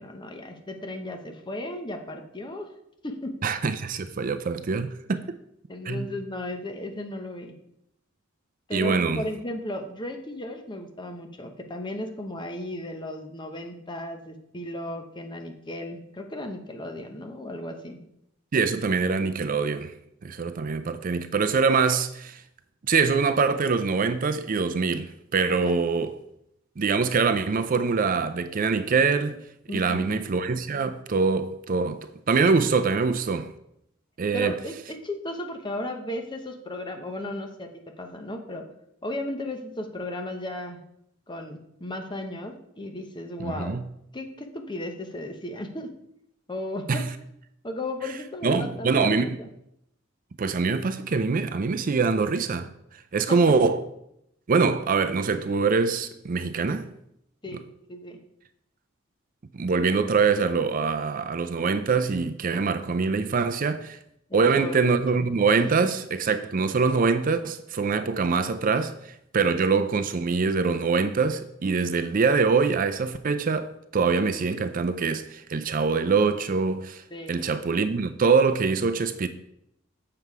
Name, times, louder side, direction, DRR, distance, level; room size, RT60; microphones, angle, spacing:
voice 1, 0.0-2.7 3.0-3.3 5.7-7.5 8.7-18.0 25.5-25.7 29.7-30.2 34.3-37.7 38.0-38.7 39.0-40.8 41.3-43.8 44.1-45.9 46.5-47.0 47.6-49.5 57.4-58.2 64.3-64.9 77.1-77.5, left 1 dB, 25° left, 0.9 m, -35 dB
voice 2, 3.4-5.4 5.9-6.1 8.7-9.2 18.5-19.9 20.2-22.4 22.8-26.1 26.8-29.4 29.7-33.5 34.2-34.5 43.4-43.8 46.9-47.1 48.4-49.4 50.4-52.7 53.1-53.8 54.5-56.9 59.5-64.0 64.3-77.0 77.3-79.3, right 4 dB, 40° right, 0.4 m, -24 dB
7.8 x 6.8 x 4.7 m
head